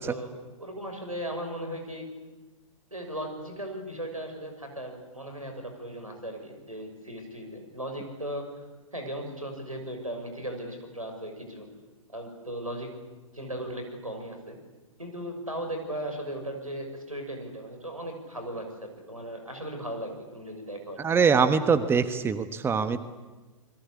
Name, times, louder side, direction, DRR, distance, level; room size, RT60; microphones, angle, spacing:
voice 1, 0.0-2.1 2.9-8.6 8.9-11.7 12.1-12.9 13.3-14.6 15.0-21.0, right 1 dB, 90° right, 4 dB, 6.6 m, -37 dB
voice 2, 21.0-23.0, right 5 dB, 15° right, 11 dB, 1.3 m, -23 dB
28.5 x 22.0 x 8.6 m, 1.2 s
figure-of-eight pair, 105°, 17 cm